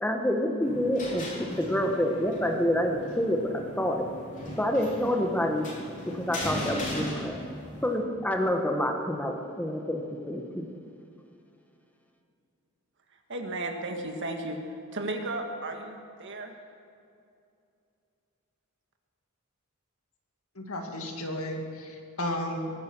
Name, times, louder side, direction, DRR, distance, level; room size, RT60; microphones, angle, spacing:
voice 1, 0.0-4.1 4.6-5.7 6.1-7.5 7.8-10.7, equal, 5° left, 3 dB, 1.3 m, -28 dB
sound 1, 0.6-7.9, left 1 dB, 35° left, 3.1 m, -38 dB
voice 2, 13.3-16.5, right 2 dB, 55° right, 4 dB, 1.7 m, -34 dB
voice 3, 20.6-22.7, left 1 dB, 75° left, 2 dB, 2.3 m, -33 dB
21.5 x 9.5 x 6.2 m, 2.5 s
head